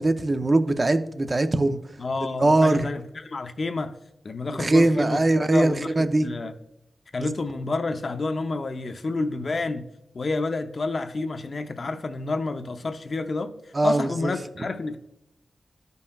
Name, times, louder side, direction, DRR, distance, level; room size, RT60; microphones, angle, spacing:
voice 1, 0.0-1.8 2.3-2.9 4.6-6.3 7.2-7.3 13.7-14.3, right 2 dB, 30° right, 0.5 m, -21 dB
voice 2, 2.0-3.9 4.2-6.5 7.1-9.8 10.1-13.5 13.8-15.0, left 3 dB, 50° left, 0.6 m, -29 dB
13.0 x 5.4 x 2.3 m
wide cardioid pair, 110°, 0 cm